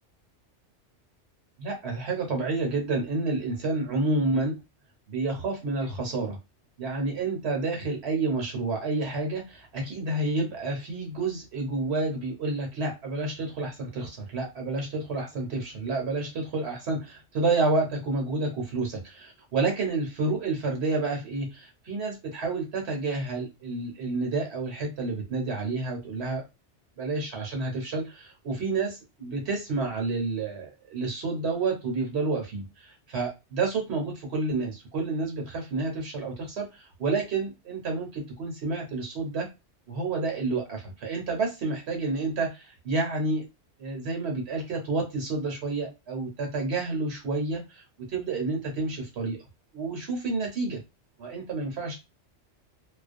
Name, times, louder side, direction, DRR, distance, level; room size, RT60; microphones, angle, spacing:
voice 1, 1.6-4.6 5.1-6.4 6.8-26.4 27.0-39.5 39.9-43.4 43.8-49.4 49.7-50.8 51.2-52.0, right 3 dB, 65° right, 1 dB, 1.0 m, -29 dB
2.4 x 2.1 x 2.5 m, 0.25 s
omnidirectional pair, 1.2 m